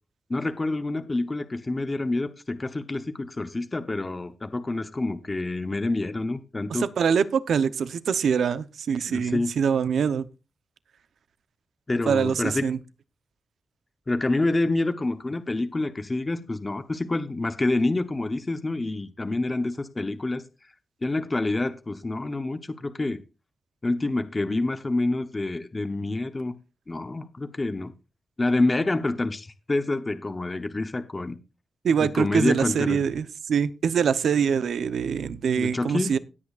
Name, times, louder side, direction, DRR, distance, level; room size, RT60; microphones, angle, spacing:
voice 1, 0.3-6.9 9.1-9.6 11.9-12.7 14.1-20.4 21.0-23.2 23.8-26.5 26.9-27.9 28.4-31.4 32.0-33.0 35.6-36.2, left 2 dB, 20° left, 0.8 m, -27 dB
voice 2, 6.7-10.3 12.1-12.8 31.8-36.2, right 7 dB, 80° right, 0.7 m, -24 dB
17.0 x 8.6 x 2.4 m
wide cardioid pair, 170°, 0 cm